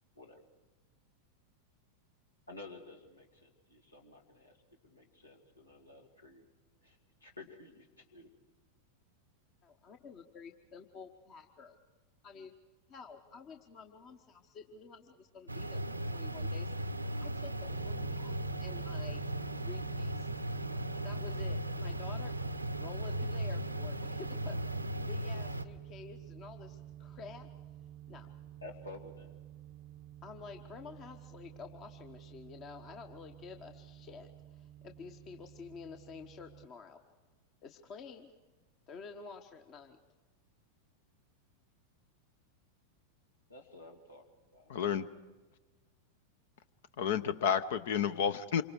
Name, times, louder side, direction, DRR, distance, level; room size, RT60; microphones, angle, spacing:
voice 1, 2.5-4.6 4.8-6.5 6.8-8.3 28.1-28.2 28.6-29.4 43.5-44.3 44.5-44.7, left 2 dB, 80° left, 1 dB, 2.4 m, -52 dB
voice 2, 9.6-11.8 12.2-12.5 12.9-15.8 16.1-16.7 17.2-19.2 19.6-20.3 21.0-22.3 22.8-24.6 24.9-27.5 28.1-28.3 30.2-37.0 37.6-38.3 38.9-40.0, left 5 dB, 35° left, 5 dB, 1.2 m, -50 dB
sound 1, 15.5-25.6, right 1 dB, 85° right, 0.8 m, -37 dB
sound 2, 17.7-36.7, right 12 dB, 35° right, 0.6 m, -49 dB
voice 3, 44.7-45.0 47.0-48.6, left 8 dB, 55° left, 14 dB, 0.8 m, -30 dB
27.5 x 24.5 x 4.8 m, 1.2 s
figure-of-eight pair, 90°, 0 cm